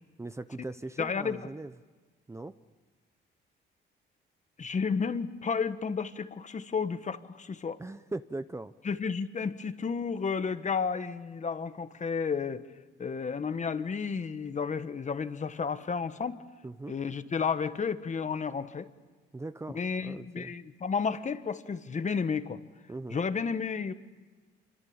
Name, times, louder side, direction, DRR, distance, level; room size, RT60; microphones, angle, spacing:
voice 1, 0.2-1.7 2.3-2.5 7.8-8.7 16.6-16.9 19.3-20.5 22.9-23.2, right 2 dB, 15° right, 12 dB, 0.8 m, -40 dB
voice 2, 1.0-1.4 4.6-7.8 8.8-12.6 13.0-16.4 16.9-18.9 19.7-22.6 23.1-23.9, left 5 dB, 35° left, 11 dB, 1.5 m, -32 dB
27.0 x 24.5 x 8.9 m, 1.3 s
cardioid pair, 90°, 20 cm